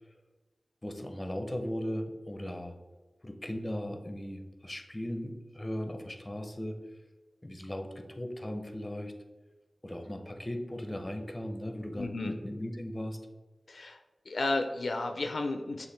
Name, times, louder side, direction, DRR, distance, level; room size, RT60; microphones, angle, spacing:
voice 1, 0.8-2.8 3.2-6.8 7.4-9.1 9.8-13.2, equal, 25° left, 6 dB, 0.6 m, -37 dB
voice 2, 11.9-12.3 13.7-14.0 14.3-15.9, left 2 dB, 70° left, 5 dB, 0.4 m, -32 dB
6.5 x 2.5 x 3.2 m, 1.2 s
cardioid pair, 45°, 0 cm